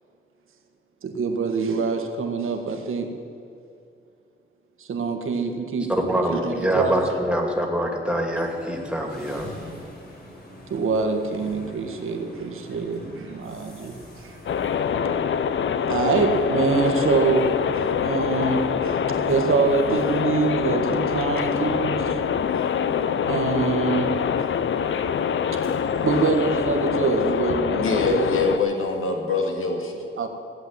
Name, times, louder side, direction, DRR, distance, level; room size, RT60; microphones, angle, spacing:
voice 1, 1.0-3.1 4.8-5.9 6.3-6.9 10.7-14.3 15.9-22.2 23.3-24.5 25.5-25.7 26.0-28.3 30.2-30.3, right 4 dB, 85° right, 4 dB, 1.8 m, -25 dB
voice 2, 5.9-9.5, right 1 dB, 5° right, 1 dB, 2.4 m, -24 dB
sound 1, 8.3-27.3, left 1 dB, 50° left, 4.3 m, -45 dB
sound 2, 14.5-28.6, left 7 dB, 70° left, 0.7 m, -25 dB
voice 3, 27.8-30.0, left 3 dB, 90° left, 1 dB, 2.3 m, -24 dB
16.5 x 8.1 x 9.6 m, 2.5 s
wide cardioid pair, 135°, 21 cm